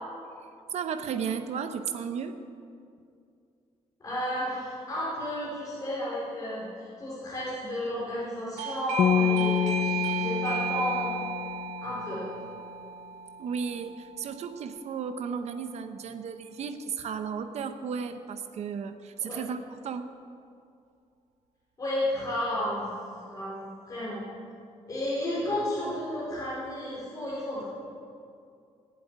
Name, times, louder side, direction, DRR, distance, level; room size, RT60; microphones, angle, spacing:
voice 1, 0.7-2.4 13.4-20.2, right 6 dB, 65° right, 8 dB, 0.9 m, -34 dB
voice 2, 4.0-11.1 11.8-12.2 19.2-19.4 21.8-22.9 23.3-24.2 24.9-27.6, left 1 dB, 30° left, -8 dB, 4.4 m, -32 dB
Doorbell, 8.6-15.0, right 8 dB, 85° right, 1.3 m, -35 dB
sound 1, 9.0-12.2, left 9 dB, 55° left, 0.4 m, -28 dB
18.0 x 7.8 x 9.4 m, 2.4 s
wide cardioid pair, 175°, 12 cm